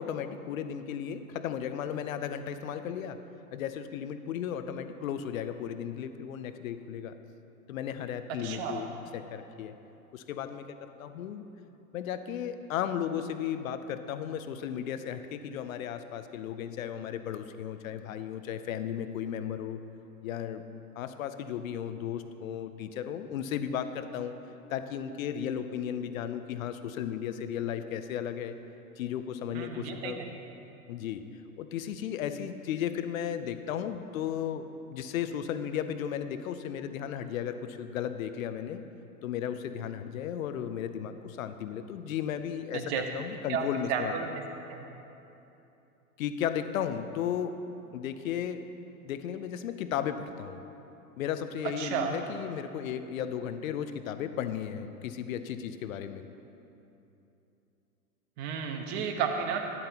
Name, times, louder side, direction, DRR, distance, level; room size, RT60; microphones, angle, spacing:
voice 1, 0.0-3.2 3.5-7.1 7.7-8.9 9.1-9.7 10.1-11.4 11.9-19.8 20.2-20.6 21.0-24.3 24.7-28.6 29.0-30.2 30.9-31.2 31.6-38.8 39.2-44.2 46.2-47.5 47.9-48.7 49.0-50.6 51.2-56.2, left 9 dB, 65° left, 10 dB, 0.7 m, -35 dB
voice 2, 8.4-8.9 29.5-30.3 42.7-43.0 43.5-43.6 43.9-44.3 44.7-44.8 51.6-52.1 58.4-59.6, right 7 dB, 45° right, 4 dB, 1.1 m, -32 dB
12.0 x 10.0 x 2.9 m, 2.9 s
hypercardioid pair, 110°, 45 cm